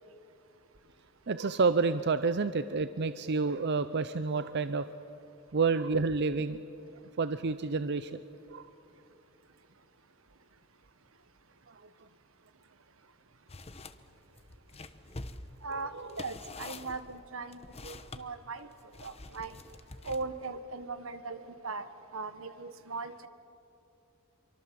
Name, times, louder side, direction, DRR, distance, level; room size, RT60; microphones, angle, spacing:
voice 1, 1.3-4.8 5.5-6.6 7.2-8.1 8.5-8.7 11.7-11.8 15.7-16.1, right 4 dB, 55° right, 12 dB, 0.6 m, -29 dB
sound 1, 13.5-14.0 14.4-18.2 18.9-20.5, left 2 dB, 30° left, 1.1 m, -46 dB
voice 2, 15.6-18.7 19.0-19.6 20.0-21.9 22.1-23.3, right 3 dB, 80° right, 11 dB, 1.5 m, -39 dB
27.0 x 24.0 x 7.6 m, 2.8 s
head